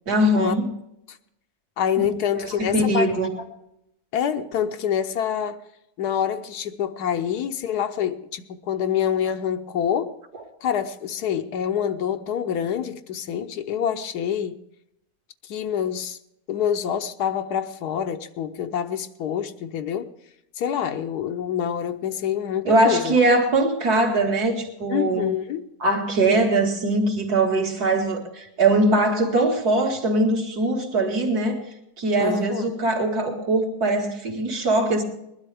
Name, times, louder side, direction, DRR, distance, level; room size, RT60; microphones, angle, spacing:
voice 1, 0.1-0.7 2.0-2.1 2.4-3.3 22.6-25.3 25.8-31.6 32.0-35.0, right 2 dB, 75° right, 2.7 m, -21 dB
voice 2, 1.8-3.1 4.1-5.6 6.0-10.1 10.6-14.6 15.4-16.2 16.5-20.1 20.6-23.2 24.9-25.7 32.2-32.7, left 9 dB, 90° left, 1.3 m, -26 dB
21.0 x 12.0 x 3.4 m
omnidirectional pair, 1.6 m